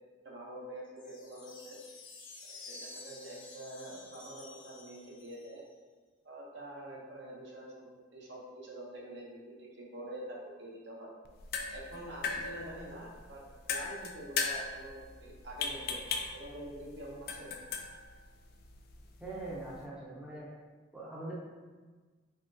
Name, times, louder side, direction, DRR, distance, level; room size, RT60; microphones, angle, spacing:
voice 1, 0.2-1.8 2.5-5.6 6.2-11.1 11.7-13.4 13.7-17.5, right 1 dB, 65° right, -3 dB, 0.8 m, -46 dB
sound 1, 1.0-5.7, left 3 dB, 75° left, 0.7 m, -51 dB
sound 2, 11.2-19.9, left 5 dB, 55° left, 0.3 m, -39 dB
voice 2, 19.2-20.5 20.9-21.3, right 2 dB, 5° right, -6 dB, 0.6 m, -42 dB
3.6 x 3.2 x 2.6 m, 1.4 s
head